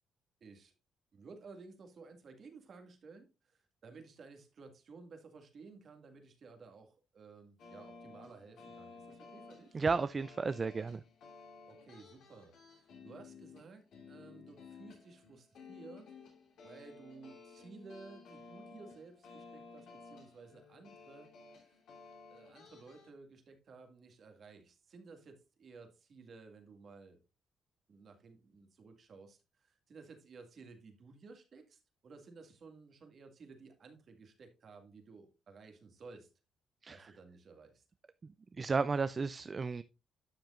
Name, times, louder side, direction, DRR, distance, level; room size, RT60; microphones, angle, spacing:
voice 1, 0.4-0.7 1.1-9.8 11.7-16.1 16.6-21.3 21.6-21.8 22.3-27.2 27.9-36.3 36.9-37.8, right 4 dB, 50° right, 2.0 m, -55 dB
sound 1, 7.6-23.1, left 4 dB, 75° left, 3.1 m, -55 dB
voice 2, 9.7-11.0 36.8-37.1 38.2-39.8, right 4 dB, 35° right, 0.4 m, -33 dB
11.5 x 6.3 x 2.5 m
cardioid pair, 90°, 0 cm